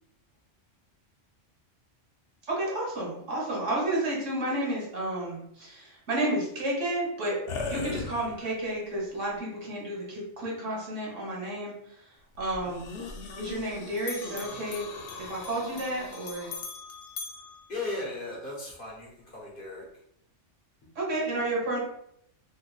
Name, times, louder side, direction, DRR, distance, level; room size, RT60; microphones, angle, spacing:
voice 1, 2.5-7.4 7.7-11.7 12.4-14.9 15.3-16.5 20.9-21.8, right 1 dB, 80° right, -3 dB, 1.6 m, -31 dB
sound 1, 7.5-8.7 9.4-9.5 12.6-16.6, left 3 dB, 60° left, 0.7 m, -39 dB
Bell, 12.3-13.7 14.0-18.5, left 5 dB, 85° left, 1.0 m, -44 dB
voice 2, 17.7-19.9, left 2 dB, 45° left, -5 dB, 1.3 m, -36 dB
3.7 x 3.1 x 2.3 m, 0.73 s
omnidirectional pair, 1.3 m